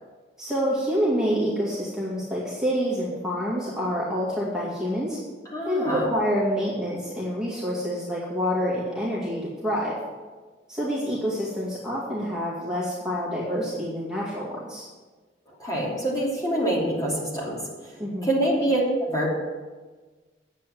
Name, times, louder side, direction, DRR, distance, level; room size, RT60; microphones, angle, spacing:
voice 1, 0.4-5.2 5.7-9.9 10.7-14.9 18.0-18.3, equal, 5° right, -7 dB, 2.3 m, -27 dB
voice 2, 5.5-6.1 15.6-17.6 18.2-19.3, right 1 dB, 20° left, -5 dB, 3.0 m, -25 dB
9.7 x 7.7 x 7.6 m, 1.3 s
head